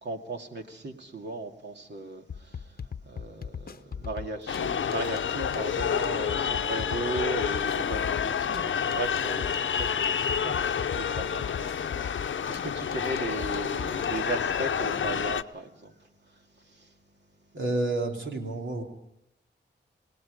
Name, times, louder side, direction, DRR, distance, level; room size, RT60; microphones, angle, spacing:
voice 1, 0.0-16.9, right 2 dB, 65° right, 2.3 m, -37 dB
sound 1, 2.3-14.1, left 6 dB, 50° left, 0.8 m, -38 dB
sound 2, 4.5-15.4, left 7 dB, 85° left, 0.7 m, -29 dB
voice 2, 17.5-18.8, right 2 dB, 80° right, 3.3 m, -29 dB
28.5 x 18.0 x 5.4 m
wide cardioid pair, 120°, 19 cm